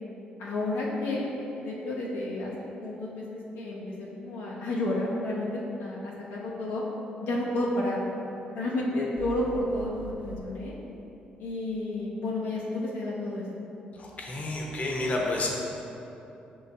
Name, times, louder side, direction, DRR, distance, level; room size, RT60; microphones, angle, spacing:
voice 1, 0.4-1.2 1.6-6.8 7.2-8.0 8.5-10.7 11.4-13.5, left 1 dB, 80° left, -4 dB, 0.6 m, -31 dB
sound 1, 9.2-10.4, right 4 dB, 50° right, 0.5 m, -42 dB
voice 2, 14.0-15.5, left 2 dB, 45° left, -1 dB, 0.8 m, -30 dB
5.2 x 3.7 x 2.7 m, 2.9 s
supercardioid pair, 65°, 3 cm